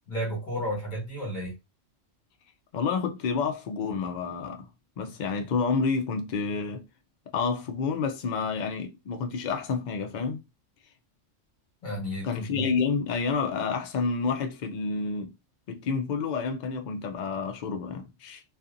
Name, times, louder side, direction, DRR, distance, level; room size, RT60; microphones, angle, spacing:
voice 1, 0.1-1.5 11.8-12.7, equal, 40° left, 1.3 m, -32 dB
voice 2, 2.7-4.7 5.0-6.8 7.3-10.4 12.2-15.3 15.7-18.4, left 5 dB, 75° left, 0.4 m, -29 dB
2.6 x 2.4 x 2.4 m
omnidirectional pair, 1.3 m